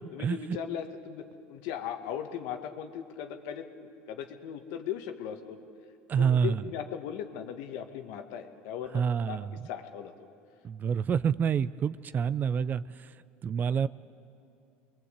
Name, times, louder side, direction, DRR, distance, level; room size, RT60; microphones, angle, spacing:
voice 1, 0.1-5.6 6.2-9.4 9.6-10.3, left 9 dB, 75° left, 6 dB, 1.8 m, -38 dB
voice 2, 6.1-6.6 8.9-9.6 10.6-13.1 13.4-13.9, right 7 dB, 35° right, 16 dB, 0.6 m, -27 dB
27.5 x 22.0 x 8.3 m, 2.6 s
supercardioid pair, 100°, 5 cm